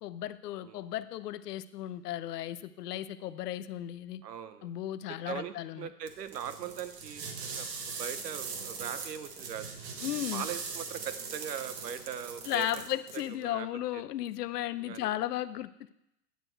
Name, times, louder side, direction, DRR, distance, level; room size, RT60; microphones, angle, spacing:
voice 1, 0.0-4.2 4.6-5.9 10.0-10.4 12.4-15.9, left 13 dB, 80° left, 15 dB, 0.6 m, -35 dB
voice 2, 4.2-4.7 5.1-7.3 7.5-7.7 8.0-9.7 10.3-12.8 13.1-13.7 13.9-14.0 14.8-15.2, right 9 dB, 90° right, 11 dB, 0.9 m, -40 dB
sound 1, 6.1-13.3, right 5 dB, 40° right, 1.4 m, -40 dB
9.5 x 6.2 x 4.5 m, 0.83 s
hypercardioid pair, 135°, 47 cm